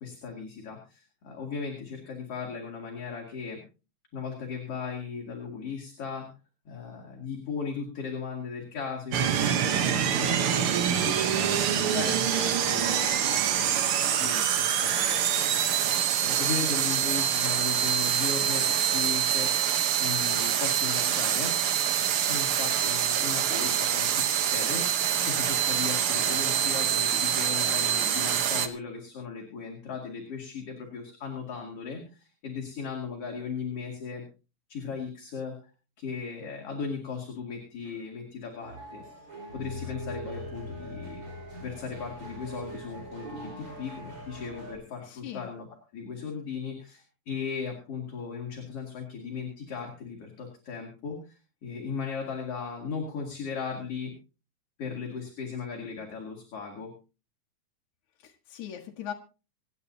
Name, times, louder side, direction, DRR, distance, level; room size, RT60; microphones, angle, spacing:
voice 1, 0.0-3.6 4.1-6.3 6.6-13.5 14.0-15.8 16.2-19.7 20.0-21.5 22.3-34.2 34.7-35.7 36.0-39.0 39.5-41.2 41.6-45.7 45.9-54.1 54.8-56.9, left 5 dB, 55° left, 0 dB, 3.3 m, -37 dB
sound 1, 9.1-28.7, right 9 dB, 60° right, 1.6 m, -25 dB
sound 2, 38.6-44.7, equal, 45° right, 5.5 m, -41 dB
voice 2, 45.1-45.5 58.2-59.1, left 9 dB, 85° left, 2 dB, 2.8 m, -40 dB
26.5 x 9.8 x 2.8 m, 0.33 s
omnidirectional pair, 3.4 m